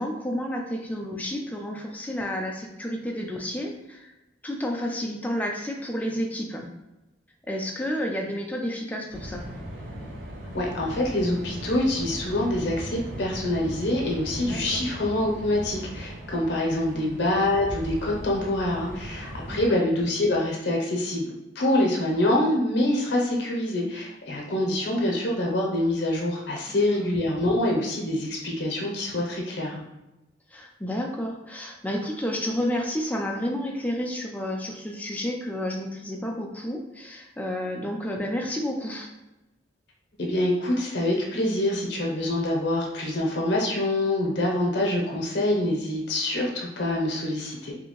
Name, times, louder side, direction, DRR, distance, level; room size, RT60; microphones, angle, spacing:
voice 1, 0.0-4.1 4.4-6.7 7.5-9.4 14.5-14.8 16.9-17.1 19.5-19.8 26.7-27.1 30.5-39.1, equal, 10° left, 1 dB, 0.3 m, -31 dB
sound 1, 9.1-19.6, right 1 dB, 60° right, 0.8 m, -38 dB
voice 2, 10.5-21.3 21.5-29.8 40.2-47.7, left 1 dB, 65° left, -1 dB, 0.7 m, -25 dB
2.8 x 2.6 x 2.9 m, 0.99 s
head